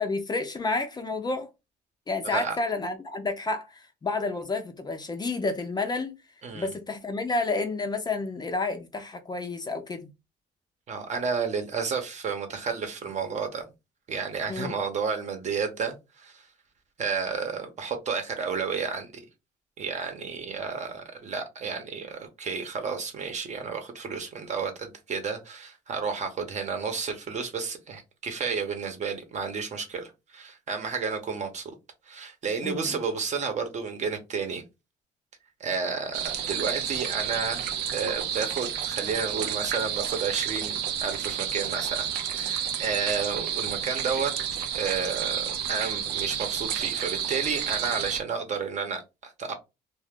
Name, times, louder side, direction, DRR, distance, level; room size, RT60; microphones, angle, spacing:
voice 1, 0.0-1.5 2.1-6.1 6.5-10.1 14.5-14.7 32.6-33.0, left 3 dB, 25° left, 0.5 m, -30 dB
voice 2, 2.2-2.6 6.4-6.7 10.9-13.7 14.1-16.5 17.0-19.1 19.8-31.7 32.1-34.6 35.6-37.7 37.9-49.5, right 5 dB, 45° right, 0.9 m, -31 dB
sound 1, 36.1-48.2, right 9 dB, 90° right, 0.5 m, -30 dB
2.4 x 2.4 x 3.5 m
cardioid pair, 110°, 17 cm